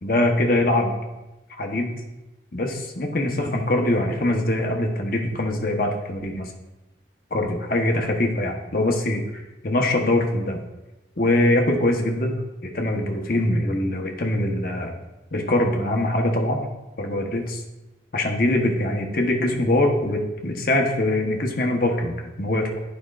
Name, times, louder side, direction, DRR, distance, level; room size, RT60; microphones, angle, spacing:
voice 1, 0.0-0.9 1.6-2.0 2.5-6.5 7.3-9.2 9.6-10.6 11.2-14.9 15.3-16.7 17.0-17.6 18.1-22.7, left 1 dB, 50° left, 2 dB, 1.0 m, -23 dB
10.5 x 5.2 x 2.4 m, 1.0 s
head